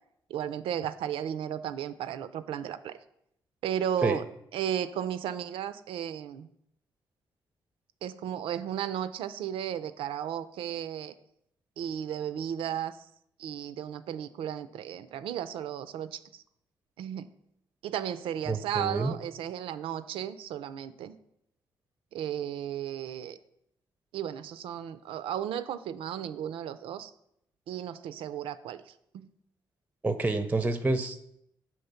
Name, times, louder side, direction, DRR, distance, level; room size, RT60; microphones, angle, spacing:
voice 1, 0.3-3.0 3.6-4.2 4.5-6.5 8.0-11.1 11.8-13.1 13.4-16.4 17.0-17.3 17.8-21.2 22.1-23.4 24.1-27.1 27.7-29.3, right 10 dB, 75° right, 13 dB, 0.3 m, -34 dB
voice 2, 18.5-19.2 30.0-31.3, right 2 dB, 15° right, 10 dB, 0.5 m, -28 dB
5.8 x 3.0 x 5.6 m, 0.75 s
supercardioid pair, 55°, 9 cm